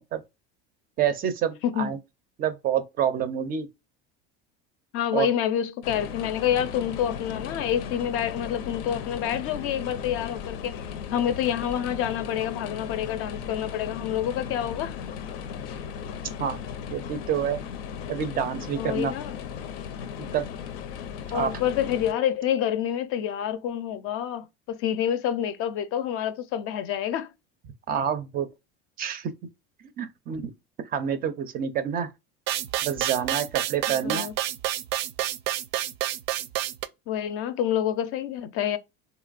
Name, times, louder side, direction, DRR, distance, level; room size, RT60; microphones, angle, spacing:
voice 1, 1.0-2.0 2.4-3.7 5.1-5.3 16.4-16.6 16.9-17.6 18.1-19.1 20.2-20.5 21.3-21.5 27.9-28.5 29.0-29.3 30.0-30.5 30.9-32.1 32.8-34.3, right 8 dB, 30° right, 0.4 m, -27 dB
voice 2, 1.6-1.9 4.9-15.0 18.8-19.4 21.3-27.3 33.9-34.3 37.1-38.8, left 10 dB, 50° left, 0.5 m, -28 dB
sound 1, 5.8-22.1, left 7 dB, 90° left, 0.6 m, -36 dB
sound 2, 32.5-36.9, right 13 dB, 85° right, 0.5 m, -29 dB
3.8 x 2.9 x 2.4 m
cardioid pair, 145°, 29 cm